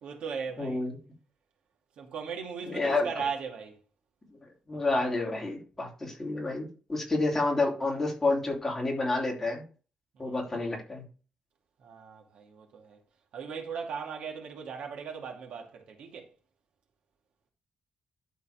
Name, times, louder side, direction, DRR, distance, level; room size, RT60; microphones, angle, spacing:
voice 1, 0.0-0.8 2.0-3.8 10.1-10.4 11.8-13.0 13.3-16.3, right 6 dB, 70° right, 2.3 m, -38 dB
voice 2, 0.6-1.0 2.6-3.1 4.7-9.6 10.2-11.0, left 2 dB, 15° left, 2.9 m, -29 dB
12.5 x 4.2 x 5.0 m
wide cardioid pair, 165°, 2 cm